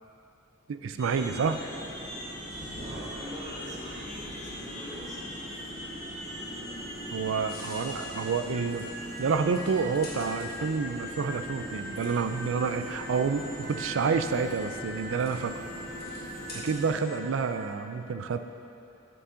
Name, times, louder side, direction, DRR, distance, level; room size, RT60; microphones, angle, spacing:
voice 1, 0.7-1.6 7.1-8.9 9.2-15.6 16.6-18.4, right 5 dB, 80° right, 9 dB, 0.4 m, -29 dB
sound 1, 1.0-16.9, equal, 50° left, 1.5 m, -42 dB
sound 2, 1.0-17.7, equal, 15° left, 1.8 m, -42 dB
sound 3, 2.5-10.5, right 1 dB, 55° right, 1.2 m, -51 dB
voice 2, 2.8-5.3, equal, 40° right, -6 dB, 1.7 m, -43 dB
9.0 x 7.0 x 3.8 m, 3.0 s
head